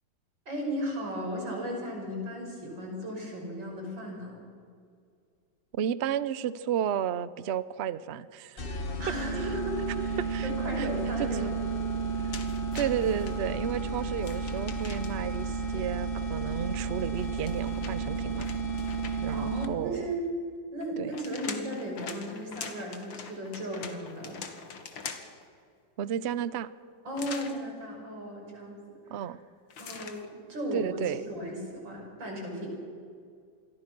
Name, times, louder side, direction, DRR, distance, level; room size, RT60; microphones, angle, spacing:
voice 1, 0.5-4.3 9.0-11.5 19.3-20.2 20.7-24.4 27.0-28.8 29.0-29.3 29.8-31.0 31.2-32.7, equal, 75° right, 0 dB, 6.5 m, -36 dB
voice 2, 5.7-8.6 10.2-10.5 10.8-10.9 11.2-11.5 12.2-12.3 12.7-18.5 19.2-20.1 21.0-21.1 26.0-26.7 29.1-29.4 30.7-31.2, right 9 dB, 60° right, 16 dB, 0.7 m, -32 dB
sound 1, 8.6-20.0, right 4 dB, 30° left, 1.4 m, -32 dB
sound 2, 12.3-13.4 14.2-15.3 17.1-19.4 20.8-25.4 27.2-27.6 29.7-30.2, left 6 dB, 90° left, 2.5 m, -43 dB
27.5 x 21.0 x 6.1 m, 2.3 s
omnidirectional pair, 2.0 m